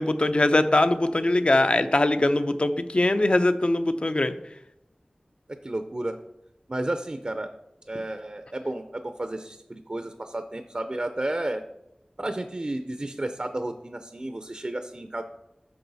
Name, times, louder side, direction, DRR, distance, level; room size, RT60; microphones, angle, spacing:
voice 1, 0.0-4.3, left 2 dB, 45° left, 10 dB, 0.6 m, -22 dB
voice 2, 5.6-6.2 6.7-7.5 7.9-11.6 12.2-15.2, right 1 dB, 40° right, 8 dB, 0.5 m, -32 dB
8.7 x 6.1 x 4.0 m, 0.87 s
wide cardioid pair, 55°, 3 cm